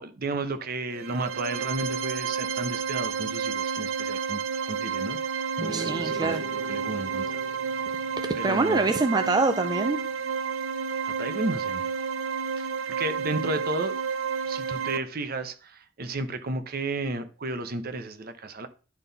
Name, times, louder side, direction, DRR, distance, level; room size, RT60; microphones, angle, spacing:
voice 1, 0.0-5.4 5.7-7.4 8.3-8.9 11.0-11.9 12.6-13.9 14.5-18.7, right 2 dB, 50° right, 0.8 m, -33 dB
sound 1, 0.9-15.0, right 6 dB, 90° right, 0.6 m, -30 dB
sound 2, 5.6-9.1, right 1 dB, ahead, 1.0 m, -41 dB
voice 2, 5.7-6.4 8.4-10.0, right 3 dB, 20° right, 0.4 m, -25 dB
10.5 x 3.9 x 4.0 m
head